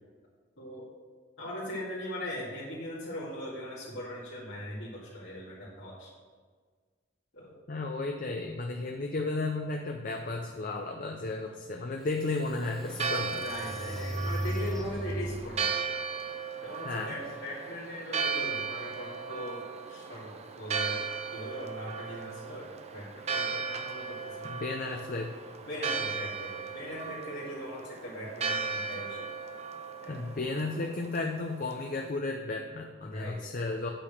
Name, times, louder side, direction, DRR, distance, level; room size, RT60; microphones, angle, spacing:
voice 1, 1.4-6.1 7.3-7.5 13.3-15.7 16.6-21.0 21.3-24.5 25.7-29.3 30.0-30.2 33.0-33.3, equal, 80° left, -10 dB, 2.4 m, -40 dB
voice 2, 7.7-13.4 16.8-17.1 24.5-25.3 30.1-33.9, left 3 dB, 50° left, 3 dB, 0.6 m, -33 dB
sound 1, 11.8-11.9 12.4-15.5, equal, ahead, 0.6 m, -36 dB
Church bell, 12.6-32.1, right 5 dB, 35° right, 0.6 m, -36 dB
8.8 x 5.0 x 6.6 m, 1.5 s
head